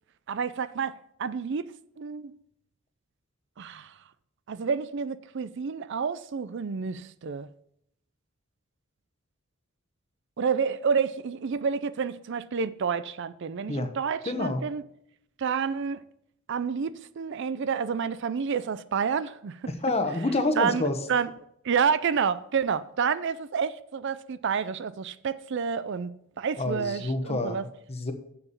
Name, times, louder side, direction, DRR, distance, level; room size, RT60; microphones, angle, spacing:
voice 1, 0.3-2.4 3.6-3.9 4.5-7.5 10.4-14.8 15.4-16.0 16.5-19.6 20.6-21.3 21.6-27.6, right 6 dB, 60° right, 0.5 m, -29 dB
voice 2, 14.3-14.6 19.7-21.0 26.6-28.1, left 2 dB, 30° left, 1.1 m, -28 dB
7.0 x 6.9 x 7.0 m
head